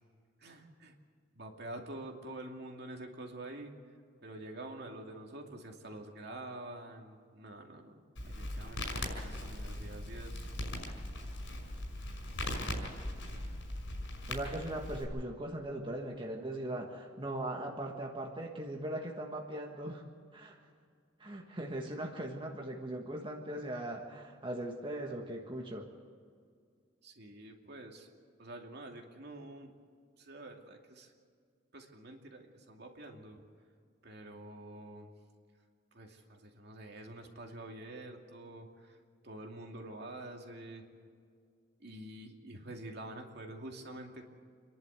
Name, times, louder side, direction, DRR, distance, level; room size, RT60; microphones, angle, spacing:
voice 1, 0.4-0.9 1.3-3.7 4.2-10.5 27.0-28.1 28.4-29.7 30.2-31.1 31.7-33.4 34.0-35.1 35.9-39.0 39.2-40.8 41.8-44.2, right 1 dB, 60° right, 2 dB, 2.5 m, -47 dB
Crackle, 8.2-15.0, left 1 dB, 75° left, 5.6 m, -39 dB
voice 2, 14.3-20.0 20.3-20.6 21.2-25.9, right 1 dB, 25° right, 1 dB, 1.5 m, -39 dB
28.0 x 11.5 x 8.2 m, 2.1 s
head